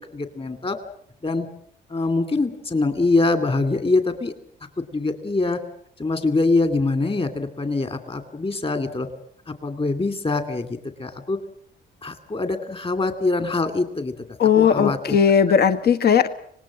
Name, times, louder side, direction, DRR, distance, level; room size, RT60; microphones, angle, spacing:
voice 1, 0.1-0.8 1.2-1.5 1.9-4.3 4.8-5.6 6.0-9.1 9.5-11.4 12.0-14.1 14.6-15.2, left 3 dB, 30° left, 8 dB, 2.7 m, -24 dB
voice 2, 14.4-16.3, left 7 dB, 55° left, 10 dB, 1.4 m, -17 dB
25.5 x 19.5 x 7.6 m, 0.64 s
cardioid pair, 90°, 20 cm